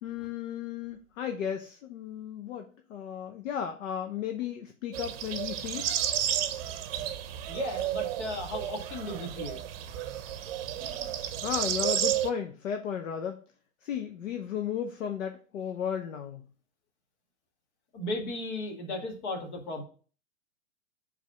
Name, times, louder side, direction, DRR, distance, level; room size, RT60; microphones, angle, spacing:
voice 1, 0.0-5.9 11.4-13.4 13.8-16.4, left 8 dB, 70° left, 5 dB, 0.9 m, -34 dB
sound 1, 4.9-12.3, right 11 dB, 45° right, 0.7 m, -32 dB
voice 2, 7.5-9.6 10.8-11.1 17.9-19.8, left 2 dB, 55° left, 3 dB, 1.9 m, -36 dB
4.8 x 3.6 x 5.4 m, 0.40 s
hypercardioid pair, 120°, 40 cm